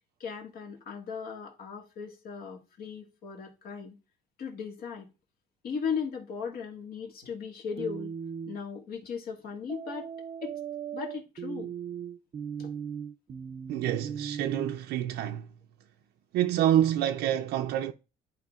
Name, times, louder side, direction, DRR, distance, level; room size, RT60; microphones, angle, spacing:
voice 1, 0.2-4.0 4.4-5.1 5.6-8.1 8.5-10.1 10.4-10.5 10.9-11.7 12.6-12.7, left 6 dB, 60° left, 1.8 m, -37 dB
sound 1, 7.8-8.6 9.7-14.7, right 7 dB, 35° right, 0.6 m, -38 dB
voice 2, 13.7-15.5 16.3-17.9, right 11 dB, 80° right, 0.5 m, -27 dB
11.0 x 4.8 x 2.4 m
cardioid pair, 110°, 17 cm